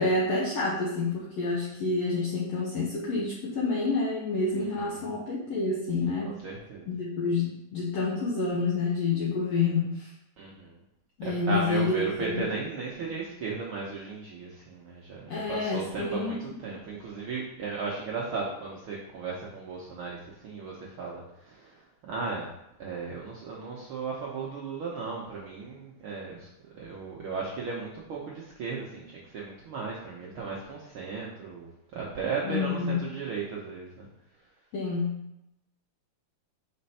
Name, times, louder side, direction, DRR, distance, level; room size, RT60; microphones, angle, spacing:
voice 1, 0.0-6.3 6.9-10.1 11.2-12.5 15.3-16.8 32.4-33.0 34.7-35.1, left 3 dB, 65° left, -4 dB, 1.8 m, -28 dB
voice 2, 4.5-5.0 6.2-6.9 10.4-10.7 11.2-22.5 22.8-34.1, right 4 dB, 75° right, -3 dB, 1.2 m, -36 dB
5.0 x 4.2 x 5.5 m, 0.84 s
omnidirectional pair, 3.4 m